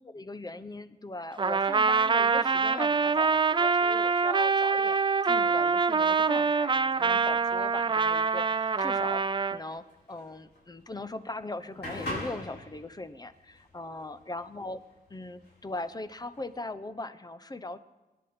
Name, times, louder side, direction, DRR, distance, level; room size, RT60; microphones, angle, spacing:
voice 1, 0.0-5.0 5.3-14.8 15.1-17.8, left 2 dB, 25° left, 12 dB, 0.7 m, -39 dB
Trumpet, 1.4-9.6, right 5 dB, 30° right, 0.4 m, -25 dB
sound 1, 6.7-16.6, left 1 dB, 80° left, 5.3 m, -43 dB
24.0 x 10.5 x 4.3 m, 1.1 s
wide cardioid pair, 85°, 17 cm